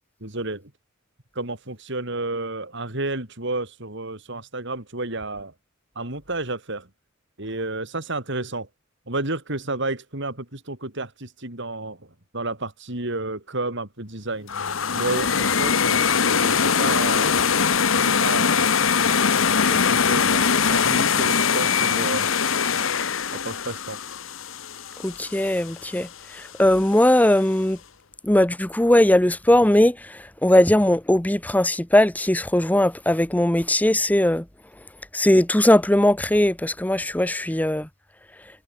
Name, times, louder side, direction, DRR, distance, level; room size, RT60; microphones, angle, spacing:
voice 1, 0.2-0.7 1.4-5.5 6.0-6.9 7.4-8.7 9.1-12.0 12.3-14.5 14.9-17.6 17.9-18.6 19.7-20.4 20.7-22.3 23.3-24.0, right 2 dB, 60° right, 4.1 m, -31 dB
sound 1, 14.5-25.5, left 6 dB, 70° left, 1.3 m, -21 dB
voice 2, 25.0-26.1 26.3-27.8 28.3-34.4 35.1-37.9, left 1 dB, 10° left, 0.8 m, -19 dB
head